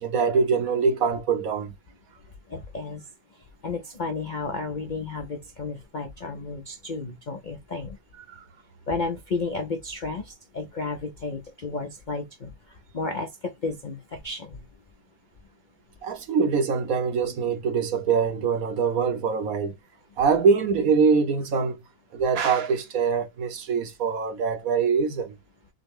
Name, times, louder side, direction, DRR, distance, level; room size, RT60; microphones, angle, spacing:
voice 1, 0.0-1.7 8.3-8.4 16.0-19.7 20.2-21.8 22.1-25.3, right 5 dB, 60° right, 1.1 m, -23 dB
voice 2, 2.5-3.1 3.6-8.0 8.9-12.5 12.9-14.7, left 3 dB, 80° left, 0.4 m, -32 dB
6.2 x 2.1 x 3.5 m
omnidirectional pair, 1.9 m